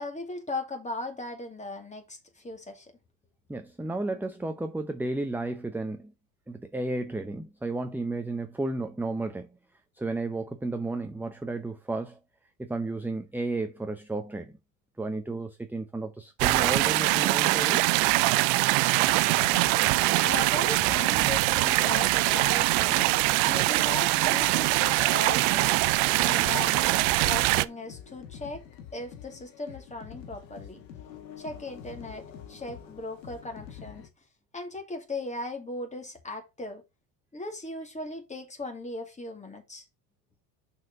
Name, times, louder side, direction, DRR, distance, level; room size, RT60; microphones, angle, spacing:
voice 1, 0.0-2.9 20.2-25.8 26.2-28.7 28.9-30.8 31.4-34.1 34.5-36.8 37.3-39.8, left 2 dB, 15° left, 2.4 m, -38 dB
voice 2, 3.5-6.1 6.5-9.5 10.0-12.2 12.6-14.5 15.0-17.8, right 2 dB, 5° right, 0.7 m, -33 dB
sound 1, 16.4-27.6, right 21 dB, 65° right, 0.6 m, -23 dB
sound 2, 19.0-34.1, left 8 dB, 90° left, 1.7 m, -46 dB
6.2 x 4.7 x 5.2 m
hypercardioid pair, 95°, 49 cm